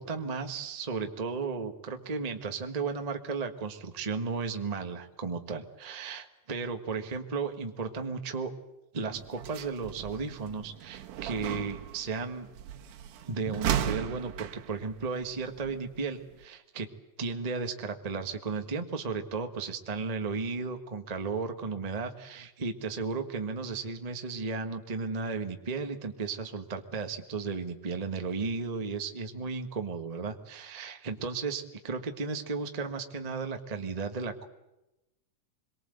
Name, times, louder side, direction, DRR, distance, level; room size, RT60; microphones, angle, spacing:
voice 1, 0.0-8.5 8.9-12.5 13.3-16.9 17.2-34.4, right 4 dB, 60° right, 6 dB, 0.4 m, -34 dB
sound 1, 9.1-16.4, right 10 dB, 90° right, 2.6 m, -37 dB
25.0 x 22.5 x 7.9 m, 0.94 s
omnidirectional pair, 3.5 m